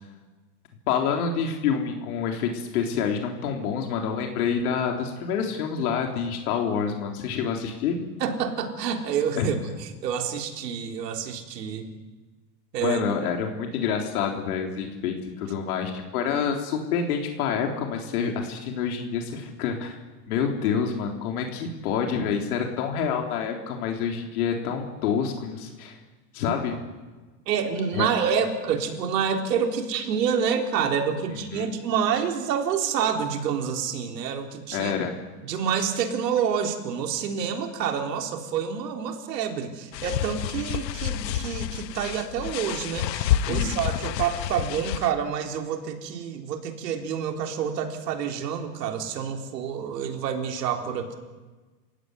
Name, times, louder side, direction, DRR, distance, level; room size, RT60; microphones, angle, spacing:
voice 1, 0.9-8.0 9.4-9.6 12.8-20.0 20.3-26.0 26.3-26.8 27.9-28.1 31.3-31.7 34.7-35.1 43.5-43.8, left 6 dB, 65° left, 2 dB, 3.7 m, -27 dB
voice 2, 8.2-9.5 9.8-11.9 12.7-13.3 27.5-34.9 35.5-51.1, right 7 dB, 80° right, 4 dB, 4.0 m, -28 dB
sound 1, 39.9-45.1, left 11 dB, 85° left, 1.3 m, -29 dB
29.0 x 16.5 x 9.6 m, 1.3 s
supercardioid pair, 160°, 49 cm